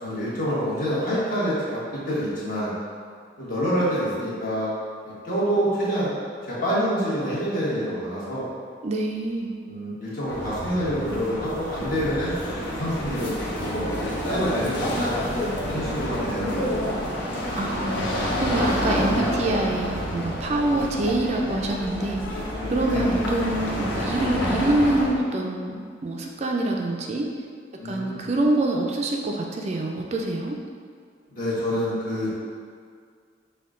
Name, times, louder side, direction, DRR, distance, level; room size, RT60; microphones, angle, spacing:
voice 1, 0.0-2.7 3.4-4.7 5.0-6.1 6.4-8.4 9.6-13.3 13.6-13.9 14.3-15.3 15.7-17.1 22.8-23.2 27.8-28.3 31.3-32.3, equal, 50° left, -8 dB, 1.3 m, -27 dB
voice 2, 8.8-9.5 17.6-22.4 22.7-27.3 27.8-30.6, right 2 dB, 35° right, 1 dB, 0.3 m, -25 dB
sound 1, 10.3-25.1, left 1 dB, 85° left, 0.9 m, -28 dB
5.6 x 2.2 x 3.6 m, 2.1 s
head